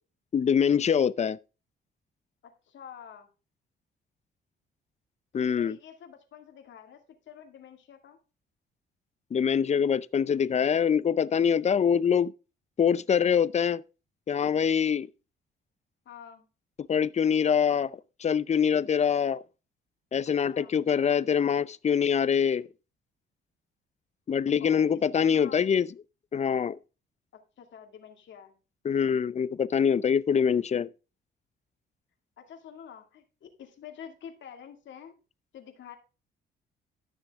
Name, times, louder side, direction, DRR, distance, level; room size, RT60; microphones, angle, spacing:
voice 1, 0.3-1.4 5.3-5.8 9.3-12.3 12.8-13.8 14.3-15.1 16.9-19.4 20.1-22.7 24.3-25.9 26.3-26.8 28.8-30.9, left 7 dB, 35° left, 0.5 m, -24 dB
voice 2, 2.4-3.3 5.3-8.2 16.1-16.5 20.5-20.8 24.6-24.9 25.2-25.6 27.6-28.6 32.4-35.1 35.5-36.0, left 8 dB, 70° left, 2.3 m, -48 dB
12.5 x 6.6 x 3.6 m
cardioid pair, 90°, 20 cm